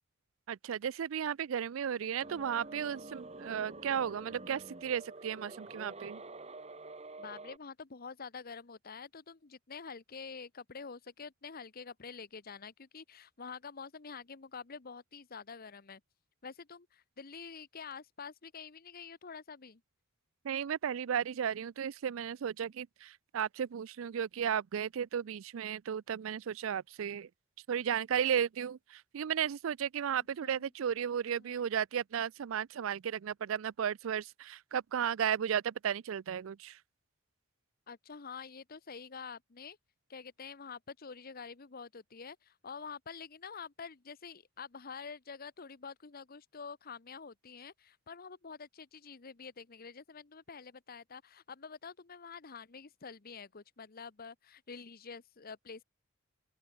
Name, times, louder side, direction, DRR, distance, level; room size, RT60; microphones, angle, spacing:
voice 1, 0.5-6.2 20.4-27.3 27.7-36.8, right 8 dB, 75° right, 0.4 m, -34 dB
sound 1, 2.2-7.6, right 2 dB, 30° right, 3.2 m, -48 dB
voice 2, 7.2-16.0 16.4-19.8 30.1-30.7 31.3-31.7 37.9-39.8 40.1-55.8, left 5 dB, 45° left, 0.9 m, -47 dB
open air
head